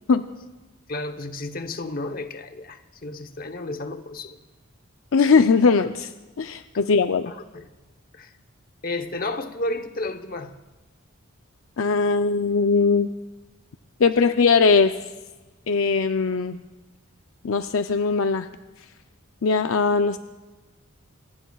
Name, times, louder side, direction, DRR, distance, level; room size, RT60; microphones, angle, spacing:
voice 1, 0.9-4.4 7.3-7.7 8.1-8.3 8.8-10.5, left 2 dB, 40° left, 8 dB, 0.9 m, -32 dB
voice 2, 5.1-6.1 6.4-7.3 11.8-13.1 14.0-15.0 15.7-16.6 17.4-18.5 19.4-20.2, left 4 dB, 70° left, 8 dB, 0.5 m, -20 dB
24.5 x 19.0 x 2.4 m, 1.2 s
head